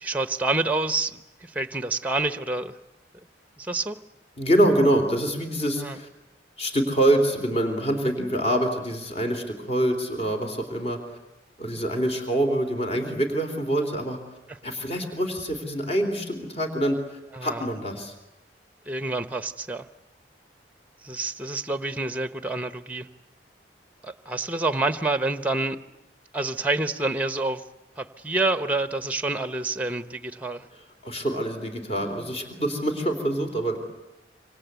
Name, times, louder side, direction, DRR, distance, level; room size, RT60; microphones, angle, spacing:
voice 1, 0.0-2.7 3.6-4.0 5.8-6.0 17.3-17.7 18.9-19.9 21.0-23.1 24.0-25.8 26.3-27.6 28.0-30.7, right 2 dB, 10° right, 12 dB, 1.0 m, -28 dB
voice 2, 4.4-6.1 6.6-11.0 11.6-14.2 14.6-18.1 31.0-33.8, right 1 dB, 35° left, 5 dB, 3.6 m, -25 dB
27.0 x 26.0 x 8.3 m, 0.95 s
head